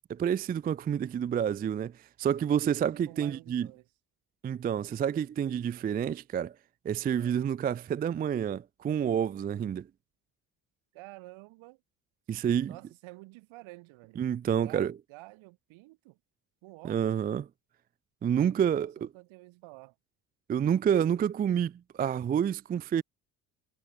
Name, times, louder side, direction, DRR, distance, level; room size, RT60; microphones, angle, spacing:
voice 1, 0.1-1.9 2.2-3.7 4.4-6.5 6.8-9.9 12.3-12.8 14.2-14.9 16.8-17.5 18.2-19.1 20.5-23.0, right 8 dB, 20° right, 0.4 m, -28 dB
voice 2, 3.0-3.9 7.1-7.4 10.9-11.8 12.3-12.4 12.7-14.2 14.6-16.2 16.6-17.1 18.8-19.9, right 22 dB, 65° right, 3.3 m, -50 dB
hypercardioid pair, 55°, 50 cm